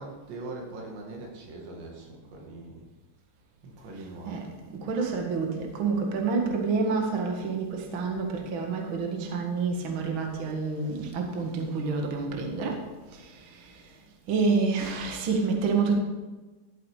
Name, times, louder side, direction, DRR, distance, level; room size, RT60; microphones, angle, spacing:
voice 1, 0.0-2.8 3.6-4.5, right 2 dB, 75° right, 0 dB, 4.5 m, -41 dB
voice 2, 4.3-12.8 13.1-13.3 14.3-16.0, right 4 dB, 60° right, 2 dB, 1.3 m, -28 dB
14.0 x 8.9 x 4.9 m, 1.2 s
omnidirectional pair, 5.1 m